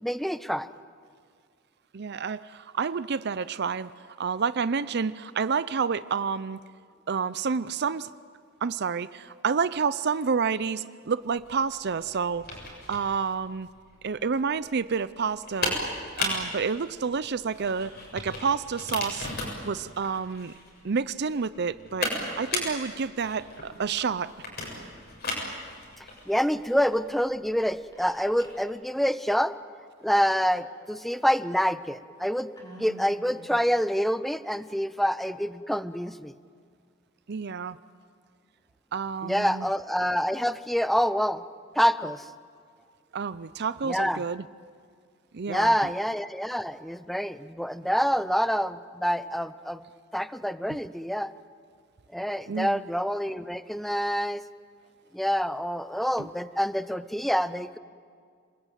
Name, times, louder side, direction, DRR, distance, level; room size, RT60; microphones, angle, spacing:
voice 1, 0.0-0.7 26.3-29.6 30.0-36.3 39.2-41.4 41.7-42.2 43.8-44.2 45.5-49.8 50.1-51.3 52.1-54.4 55.1-57.8, equal, ahead, 14 dB, 0.7 m, -27 dB
voice 2, 1.9-3.9 4.2-6.6 7.1-8.1 8.6-12.5 12.9-13.7 14.0-15.8 16.2-19.3 19.6-20.5 20.8-24.3 37.3-37.8 38.9-39.7 43.1-44.4 45.3-45.8 50.7-50.8 52.5-52.8 56.2-56.3, right 5 dB, 55° right, 16 dB, 0.6 m, -29 dB
sound 1, 11.3-28.6, left 2 dB, 50° left, 7.3 m, -36 dB
Whispering, 27.9-28.6 28.9-29.0 30.2-31.0 31.6-31.7 32.5-33.8, right 1 dB, 20° left, 4.8 m, -49 dB
28.5 x 21.0 x 9.2 m, 2.1 s
head